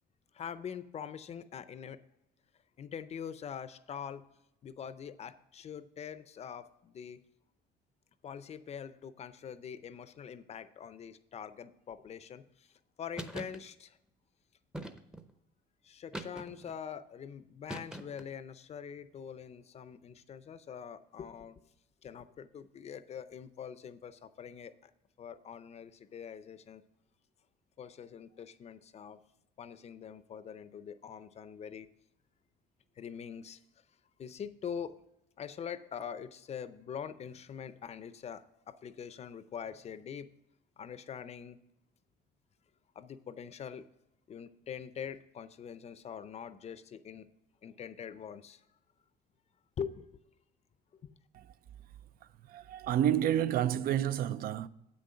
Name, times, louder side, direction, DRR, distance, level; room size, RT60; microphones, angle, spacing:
voice 1, 0.3-2.0 2.8-4.2 4.6-7.2 8.2-12.7 13.0-14.0 15.8-21.6 22.0-24.9 25.2-26.8 27.8-29.2 29.6-31.9 33.0-33.6 34.2-34.9 35.4-40.3 40.8-41.6 43.0-43.9 44.3-47.3 47.6-48.6 49.8-50.1 50.9-51.1, left 7 dB, 40° left, 0.5 m, -44 dB
sound 1, 13.2-13.6 14.7-15.3 16.1-16.8 17.7-18.3, right 1 dB, 5° right, 0.6 m, -42 dB
voice 2, 52.5-54.7, right 10 dB, 60° right, 0.4 m, -29 dB
7.8 x 6.4 x 5.5 m
cardioid pair, 110°, 17 cm